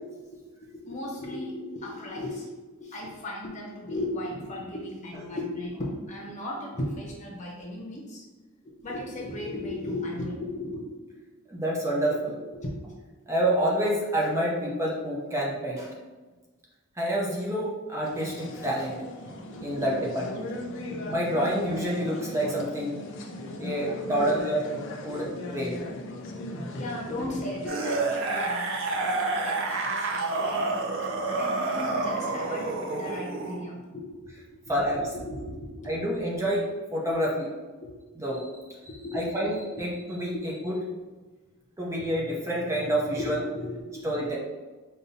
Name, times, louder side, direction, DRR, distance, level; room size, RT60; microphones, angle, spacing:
voice 1, 0.7-8.2 8.6-10.9 12.4-13.0 19.5-19.9 20.9-21.0 23.6-24.0 25.1-25.3 25.7-25.9 26.7-28.8 29.2-30.7 31.3-35.9 37.8-37.9 38.8-39.5 40.3-40.4 43.2-44.1, left 1 dB, 35° left, -3 dB, 0.9 m, -36 dB
voice 2, 11.5-12.4 13.3-15.9 17.0-19.0 19.6-20.5 21.1-22.9 23.6-24.7 25.0-25.8 34.7-35.0 35.8-37.5 38.2-38.5 39.1-40.8 41.8-43.4 44.0-44.4, right 1 dB, 15° right, -4 dB, 0.6 m, -28 dB
sound 1, 18.0-27.7, left 1 dB, 60° left, 0.5 m, -38 dB
sound 2, 27.7-33.6 34.8-34.9, right 3 dB, 65° right, 0.6 m, -29 dB
5.3 x 2.6 x 2.7 m, 1.3 s
head